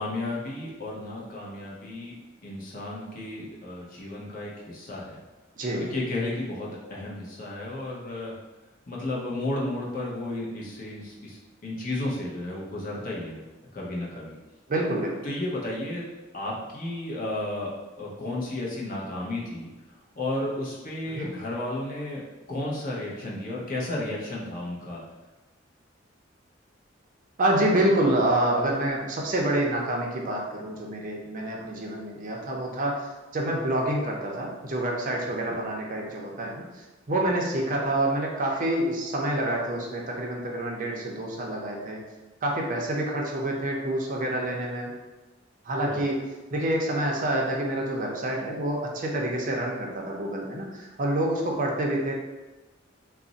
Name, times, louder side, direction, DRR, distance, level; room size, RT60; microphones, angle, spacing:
voice 1, 0.0-2.2 2.4-5.2 5.9-8.3 8.9-13.4 13.7-14.4 15.2-16.0 16.3-19.7 20.2-22.2 22.5-25.0 35.5-35.6 45.8-46.0, left 1 dB, 45° left, -4 dB, 0.7 m, -33 dB
voice 2, 5.6-5.9 14.7-15.2 21.1-21.3 27.4-36.6 37.1-42.0 42.4-44.9 45.7-46.2 46.5-52.2, right 1 dB, 45° right, -1 dB, 0.5 m, -27 dB
2.4 x 2.0 x 3.8 m, 1.2 s
head